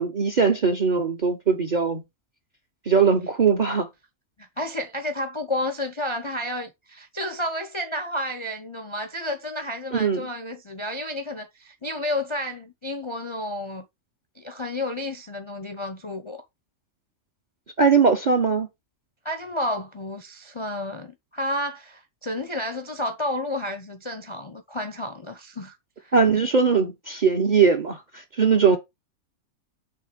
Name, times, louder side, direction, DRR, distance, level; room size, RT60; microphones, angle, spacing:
voice 1, 0.0-2.0 2.9-3.9 9.9-10.3 17.8-18.7 26.1-28.8, right 5 dB, 40° right, 0.8 m, -20 dB
voice 2, 4.4-13.9 14.4-16.4 19.2-26.1 28.7-28.8, left 1 dB, 30° left, 0.6 m, -31 dB
5.6 x 3.7 x 5.0 m
omnidirectional pair, 1.5 m